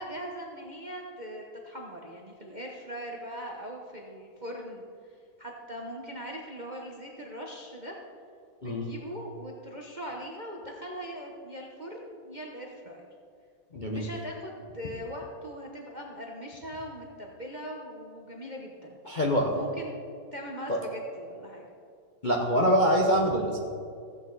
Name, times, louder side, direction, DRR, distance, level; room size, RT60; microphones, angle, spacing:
voice 1, 0.0-4.9 5.4-7.9 8.6-13.0 13.9-19.0 19.5-20.0 20.3-21.6, equal, 35° right, -1 dB, 0.8 m, -40 dB
voice 2, 13.7-14.1 19.0-19.5 20.7-20.8 22.2-23.6, equal, 35° left, -1 dB, 0.8 m, -24 dB
15.5 x 8.4 x 4.0 m, 2.4 s
omnidirectional pair, 2.1 m